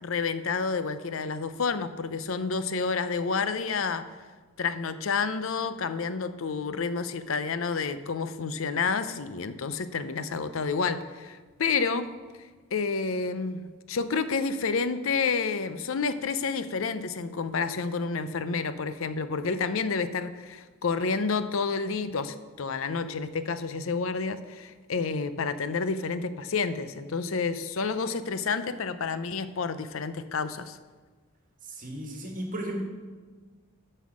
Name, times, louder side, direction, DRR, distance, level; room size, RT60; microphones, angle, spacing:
voice 1, 0.0-4.1 4.6-12.1 12.7-30.8, left 4 dB, 70° left, 12 dB, 0.6 m, -29 dB
voice 2, 31.6-32.8, right 1 dB, 40° right, 2 dB, 1.6 m, -35 dB
9.4 x 5.6 x 6.3 m, 1.4 s
head